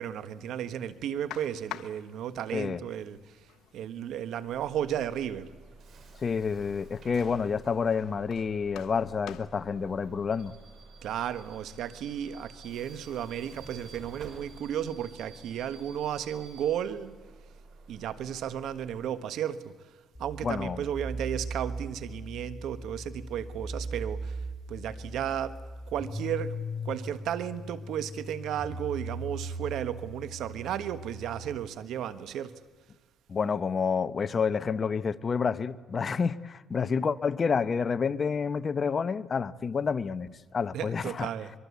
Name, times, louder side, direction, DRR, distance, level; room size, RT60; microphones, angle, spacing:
voice 1, 0.0-3.3 3.7-5.5 11.0-17.2 17.9-19.7 20.2-24.4 24.7-25.6 25.9-26.6 26.8-32.5 40.7-41.5, right 10 dB, 80° right, 1.3 m, -34 dB
sound 1, 1.3-10.8, left 12 dB, 85° left, 0.9 m, -50 dB
Bus / Alarm, 4.4-19.0, right 3 dB, 65° right, 5.6 m, -51 dB
voice 2, 6.2-10.5 20.4-20.8 33.3-41.3, left 5 dB, 40° left, 0.9 m, -29 dB
sound 2, 20.1-31.6, right 1 dB, 20° left, 5.7 m, -39 dB
23.5 x 23.0 x 8.3 m
cardioid pair, 90°, 0 cm